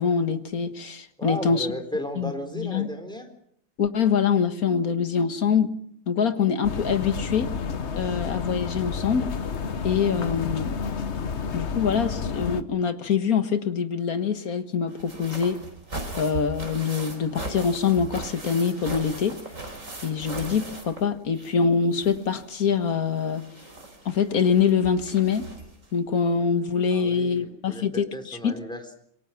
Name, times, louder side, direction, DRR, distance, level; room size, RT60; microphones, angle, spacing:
voice 1, 0.0-1.7 2.2-2.9 3.8-5.7 6.1-7.5 8.0-9.3 9.8-10.8 11.5-15.6 16.2-19.4 20.0-23.4 24.1-25.5 25.9-28.6, left 6 dB, 60° left, 1.9 m, -24 dB
voice 2, 1.2-3.3 26.9-28.9, left 1 dB, 5° left, 3.9 m, -34 dB
sound 1, 6.6-12.6, left 5 dB, 45° left, 1.3 m, -30 dB
sound 2, 14.9-21.6 21.9-25.9 26.9-27.0 27.4-27.5, right 2 dB, 50° right, 4.8 m, -38 dB
27.0 x 22.5 x 5.9 m
omnidirectional pair, 1.7 m